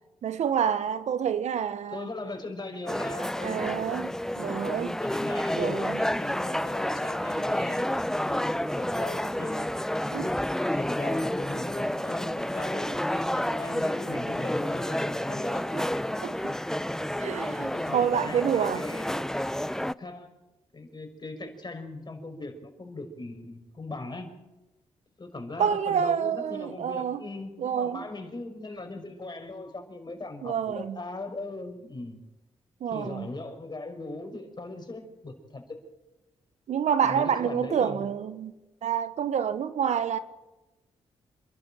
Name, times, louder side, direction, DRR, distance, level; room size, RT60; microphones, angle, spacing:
voice 1, 0.2-2.1 3.4-4.1 4.4-5.0 5.5-6.0 10.1-10.3 15.7-15.8 16.2-16.5 17.2-18.8 25.6-27.2 27.6-28.0 30.4-31.0 32.8-33.3 36.7-38.5 38.8-40.2, right 8 dB, 70° right, 1.1 m, -28 dB
voice 2, 1.9-3.8 5.0-9.7 10.6-15.6 17.6-19.1 20.0-20.3 20.7-24.3 25.2-32.2 32.9-35.8 37.0-38.1, left 2 dB, 35° left, 5.6 m, -39 dB
sound 1, 2.9-19.9, left 1 dB, 5° left, 0.6 m, -30 dB
27.5 x 12.0 x 8.9 m
supercardioid pair, 50°, 12 cm